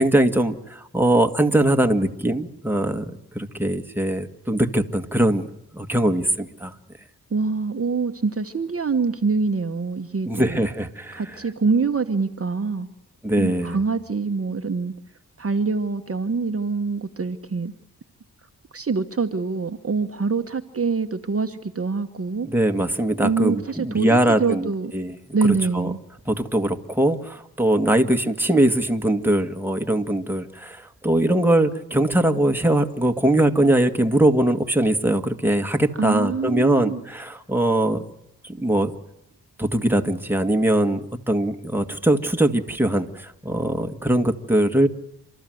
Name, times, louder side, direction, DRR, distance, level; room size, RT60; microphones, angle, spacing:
voice 1, 0.0-5.5 5.7-6.7 10.3-11.4 13.2-13.8 22.4-25.2 25.4-25.9 26.3-38.0 38.4-38.9 39.6-44.9, right 1 dB, 5° right, 1.8 m, -21 dB
voice 2, 7.3-10.7 11.1-12.9 13.4-14.9 15.4-17.7 18.7-22.5 23.2-24.9 25.3-26.0 36.0-37.0, right 4 dB, 35° right, 1.2 m, -25 dB
29.5 x 13.0 x 7.8 m
cardioid pair, 55°, 38 cm